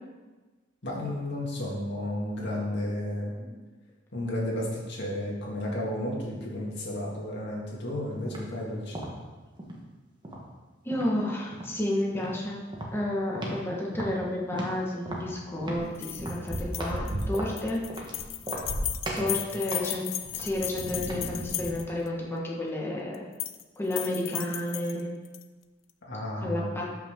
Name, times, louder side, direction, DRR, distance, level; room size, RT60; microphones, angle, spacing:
voice 1, 0.8-3.3 4.1-9.0 19.2-19.4 26.0-26.8, left 1 dB, 60° left, -4 dB, 2.4 m, -32 dB
sound 1, 8.2-8.5 8.9-9.8 10.2-11.2 11.5-11.8 12.1-12.4 12.7-13.7 13.9-17.0 17.3-18.1 18.4-18.8 19.0-19.3 19.7-21.4, right 1 dB, 25° right, 1.4 m, -37 dB
voice 2, 10.8-12.6 12.9-17.8 19.1-20.1 20.3-23.2 23.8-25.1 26.4-26.9, left 1 dB, 10° left, -4 dB, 1.5 m, -31 dB
sound 2, 15.6-19.0 20.2-21.9, right 1 dB, 55° right, 1.3 m, -36 dB
sound 3, 16.0-22.1 23.1-23.6 23.9-25.4, left 13 dB, 80° left, 0.5 m, -36 dB
13.0 x 6.0 x 3.8 m, 1.3 s
head